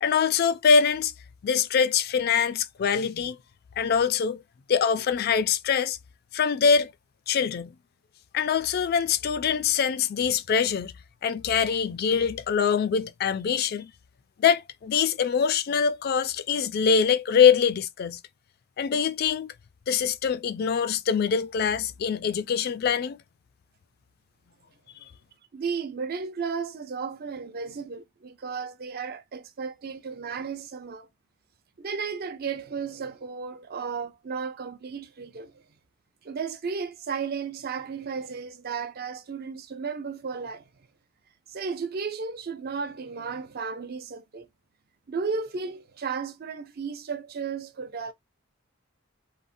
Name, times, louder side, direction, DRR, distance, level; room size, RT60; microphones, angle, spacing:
voice 1, 0.0-1.1 1.4-3.4 3.8-4.4 4.7-6.0 6.3-6.9 7.3-7.7 8.3-10.9 11.2-13.9 14.4-18.2 18.8-19.5 19.9-23.2, left 6 dB, 50° left, 0.3 m, -24 dB
voice 2, 25.5-31.1 31.8-35.6 36.2-40.7 41.5-44.5 45.1-48.1, right 5 dB, 50° right, 0.5 m, -34 dB
3.8 x 2.0 x 2.5 m
head